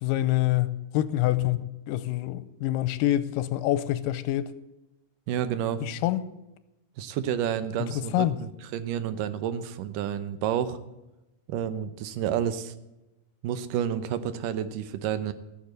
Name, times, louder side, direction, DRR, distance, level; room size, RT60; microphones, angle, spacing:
voice 1, 0.0-4.5 5.8-6.2 7.8-8.4, left 14 dB, 85° left, 2.3 m, -26 dB
voice 2, 5.3-5.8 7.0-10.8 11.5-12.7 13.4-15.3, right 9 dB, 80° right, 2.3 m, -30 dB
14.5 x 7.3 x 8.0 m
omnidirectional pair, 3.9 m